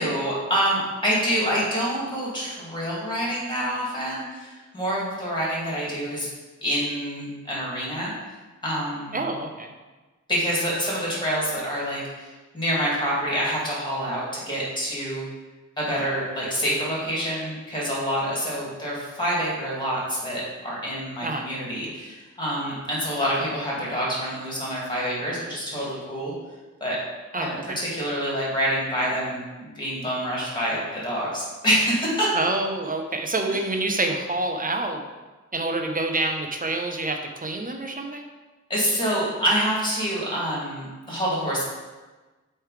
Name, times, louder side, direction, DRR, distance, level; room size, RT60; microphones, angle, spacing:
voice 1, 0.0-6.3 6.6-8.1 8.6-9.2 10.3-12.3 12.5-15.2 15.8-26.3 26.8-27.0 27.4-32.3 38.7-41.6, equal, 15° left, -5 dB, 2.3 m, -27 dB
voice 2, 9.1-9.7 21.2-21.5 27.3-27.8 32.3-35.0 35.5-38.3, right 2 dB, 30° right, 4 dB, 0.7 m, -27 dB
8.3 x 3.3 x 4.9 m, 1.2 s
wide cardioid pair, 150°, 30 cm